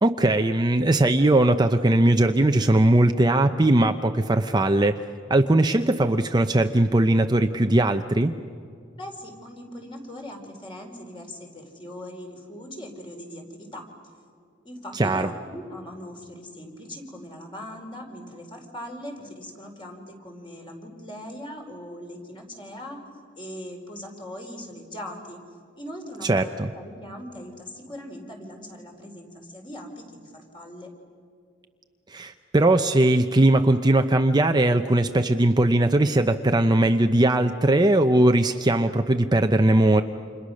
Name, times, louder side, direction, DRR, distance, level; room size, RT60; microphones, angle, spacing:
voice 1, 0.0-5.0 5.3-8.3 14.9-15.3 26.2-26.7 32.1-40.0, right 1 dB, 20° right, 6 dB, 0.7 m, -20 dB
voice 2, 9.0-13.8 14.6-23.0 23.4-25.4 25.8-30.9, equal, 25° left, 2 dB, 4.4 m, -40 dB
30.0 x 28.0 x 6.4 m, 2.2 s
head